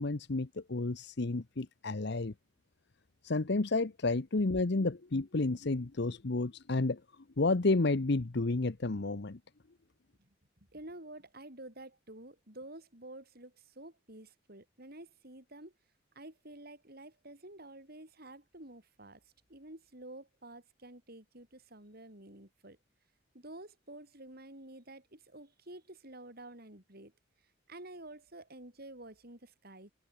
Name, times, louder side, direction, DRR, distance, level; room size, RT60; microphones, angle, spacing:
voice 1, 0.0-2.3 3.2-7.0 7.4-9.4, left 3 dB, 60° left, 0.9 m, -31 dB
voice 2, 10.7-15.7 16.1-19.2 19.5-22.8 23.3-27.1 27.7-29.9, right 1 dB, 50° right, 7.9 m, -50 dB
head